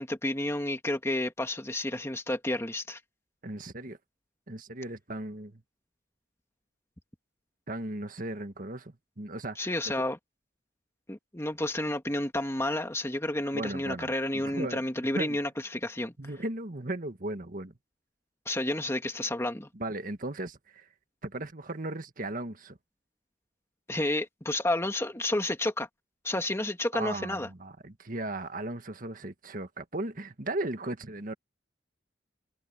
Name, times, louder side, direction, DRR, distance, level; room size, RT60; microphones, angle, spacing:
voice 1, 0.0-3.0 9.6-10.2 11.1-16.1 18.5-19.7 23.9-25.9 26.2-27.5, left 1 dB, 15° left, 2.0 m, -30 dB
voice 2, 3.4-4.0 4.5-5.6 7.7-9.7 13.5-14.8 15.1-15.4 16.2-17.7 19.7-20.9 21.2-22.8 26.9-31.3, right 2 dB, 50° right, 1.7 m, -36 dB
head